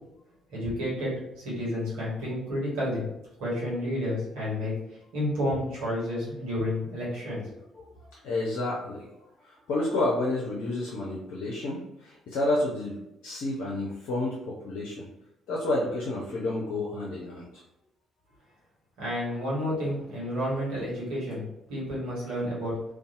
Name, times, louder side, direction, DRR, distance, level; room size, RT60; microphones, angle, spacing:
voice 1, 0.5-3.0 3.4-7.5 19.0-22.7, left 1 dB, 70° right, -7 dB, 1.3 m, -31 dB
voice 2, 8.2-9.2 9.4-15.1 15.5-17.6, left 2 dB, 65° left, -5 dB, 0.5 m, -30 dB
2.6 x 2.3 x 2.4 m, 0.87 s
hypercardioid pair, 45°, 0 cm